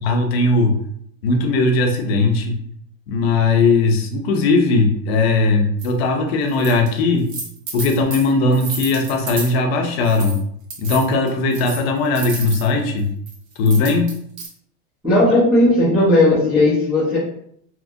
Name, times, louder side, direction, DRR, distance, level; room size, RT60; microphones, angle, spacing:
voice 1, 0.0-0.8 1.2-2.6 3.1-7.3 7.7-10.4 10.8-13.1 13.6-14.1, left 3 dB, 55° left, 3 dB, 0.5 m, -18 dB
sound 1, 5.8-5.9 6.5-6.9 7.2-9.6 10.0-10.4 10.7-12.7 13.3-14.5, right 3 dB, 85° right, 1.1 m, -31 dB
voice 2, 15.0-17.2, left 1 dB, 5° right, -15 dB, 0.3 m, -15 dB
2.9 x 2.3 x 2.5 m, 0.68 s
supercardioid pair, 175°, 39 cm